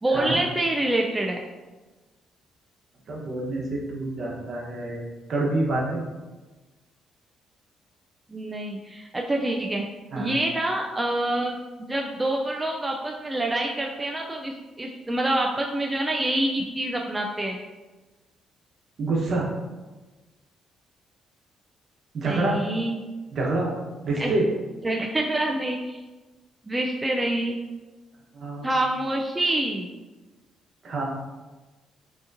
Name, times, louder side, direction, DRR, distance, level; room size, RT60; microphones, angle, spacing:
voice 1, 0.0-1.4 8.3-9.8 10.2-17.6 22.2-23.0 24.2-24.3 24.8-26.0 26.7-27.6 28.6-29.9, right 1 dB, 15° right, 1 dB, 0.4 m, -26 dB
voice 2, 3.1-6.1 10.1-10.3 19.0-19.5 22.1-22.6 23.3-23.7 24.0-24.4 28.3-28.7 30.8-31.0, right 2 dB, 55° right, -2 dB, 1.0 m, -27 dB
4.9 x 2.8 x 2.6 m, 1.2 s
cardioid pair, 90°, 0 cm